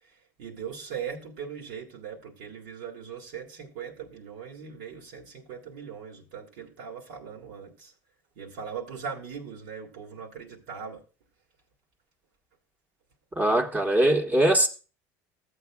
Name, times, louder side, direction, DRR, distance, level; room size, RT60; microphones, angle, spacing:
voice 1, 0.4-7.9 8.4-11.0, right 7 dB, 80° right, 2.0 m, -39 dB
voice 2, 13.4-14.7, right 1 dB, 20° right, 1.3 m, -21 dB
13.5 x 8.0 x 2.3 m
supercardioid pair, 90°, 9 cm